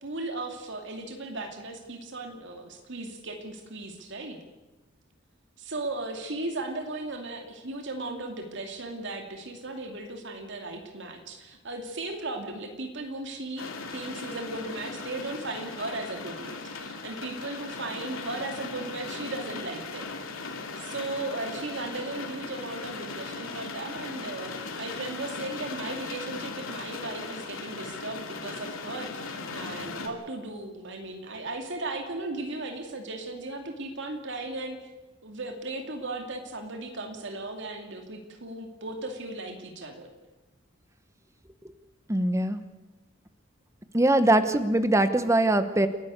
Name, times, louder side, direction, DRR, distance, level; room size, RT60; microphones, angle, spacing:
voice 1, 0.0-4.4 5.6-20.1 20.8-34.8 35.2-40.1, right 2 dB, 65° right, 4 dB, 2.5 m, -36 dB
sound 1, 13.6-30.1, left 4 dB, 85° left, 2.7 m, -38 dB
voice 2, 42.1-42.6 43.9-45.9, right 1 dB, 15° right, 11 dB, 1.2 m, -22 dB
29.5 x 11.5 x 8.2 m, 1.1 s
head